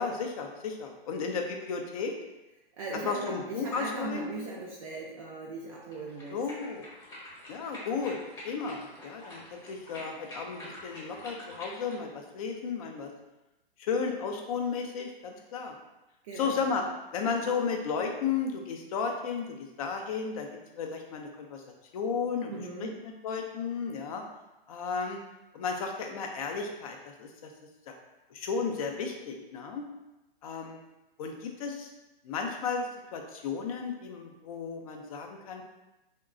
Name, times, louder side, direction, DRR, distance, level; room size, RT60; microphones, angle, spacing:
voice 1, 0.0-2.1 3.0-4.3 6.3-6.8 7.5-8.2 8.4-13.1 13.8-15.7 16.4-16.8 17.1-19.5 19.8-20.5 20.7-21.6 21.9-22.5 23.2-24.2 24.7-25.2 25.5-27.5 27.9-28.0 28.3-29.8 30.4-30.8 31.2-31.9 32.2-35.6, left 5 dB, 40° left, 3 dB, 0.5 m, -33 dB
voice 2, 2.8-6.4 16.2-16.7 22.5-23.0, right 3 dB, 35° right, -4 dB, 0.4 m, -38 dB
sound 1, 5.8-12.0, left 1 dB, 15° left, 0.9 m, -46 dB
3.8 x 2.1 x 2.4 m, 1.0 s
hypercardioid pair, 135°, 30 cm